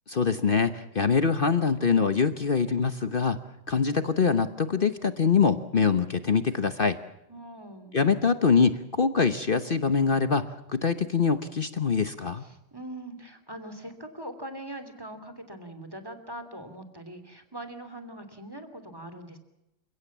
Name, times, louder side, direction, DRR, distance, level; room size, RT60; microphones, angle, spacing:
voice 1, 0.1-3.4 3.7-7.0 7.9-10.5 10.7-12.4, left 5 dB, 45° left, 11 dB, 0.7 m, -24 dB
voice 2, 7.3-8.0 12.4-19.4, right 1 dB, 10° right, 8 dB, 2.8 m, -42 dB
29.0 x 17.0 x 7.3 m, 0.89 s
omnidirectional pair, 2.1 m